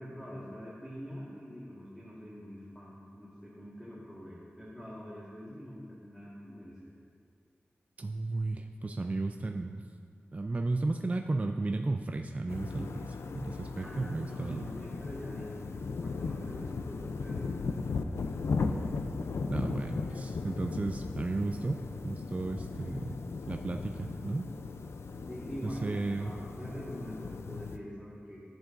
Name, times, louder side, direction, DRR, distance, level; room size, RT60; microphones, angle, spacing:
voice 1, 0.0-6.9 13.7-17.7 25.2-28.4, equal, 5° left, -8 dB, 1.6 m, -45 dB
voice 2, 8.0-9.8 10.3-14.6 19.5-23.2 23.5-24.5 25.6-26.3, right 2 dB, 35° right, 4 dB, 0.4 m, -34 dB
sound 1, 12.5-27.8, left 4 dB, 80° left, 0.4 m, -37 dB
13.5 x 7.5 x 2.6 m, 2.1 s
wide cardioid pair, 85°, 4 cm